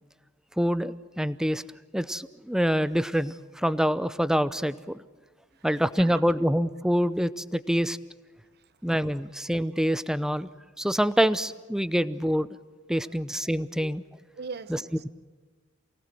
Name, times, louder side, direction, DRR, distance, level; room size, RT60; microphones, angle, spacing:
voice 1, 0.6-1.6 1.9-5.0 5.6-8.0 8.8-10.5 10.8-12.5 12.9-14.0 14.7-14.8, equal, 5° right, 15 dB, 0.7 m, -26 dB
voice 2, 14.4-15.1, right 5 dB, 50° right, 13 dB, 1.0 m, -39 dB
28.5 x 18.5 x 7.7 m, 1.4 s
head